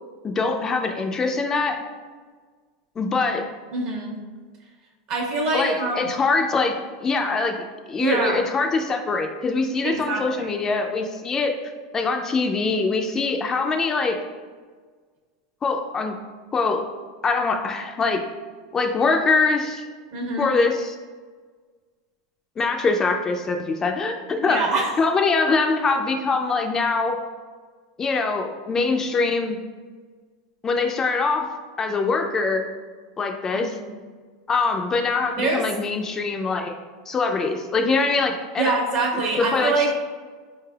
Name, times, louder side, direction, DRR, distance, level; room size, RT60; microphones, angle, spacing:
voice 1, 0.2-1.8 3.0-3.5 5.5-6.7 7.0-11.5 11.9-14.2 15.6-16.1 16.5-16.8 17.2-18.2 18.7-19.8 20.4-21.0 22.6-24.7 25.0-27.2 28.0-29.6 30.6-31.5 31.8-32.7 33.2-33.8 34.5-36.7 37.1-38.7 39.4-39.9, left 4 dB, 25° left, 4 dB, 0.3 m, -23 dB
voice 2, 3.7-4.1 5.1-6.1 8.0-8.4 9.8-10.6 20.1-20.5 24.4-24.9 33.5-33.9 35.4-35.6 38.6-39.9, right 3 dB, 55° right, -1 dB, 1.1 m, -25 dB
4.3 x 3.2 x 2.3 m, 1.5 s
hypercardioid pair, 105°, 2 cm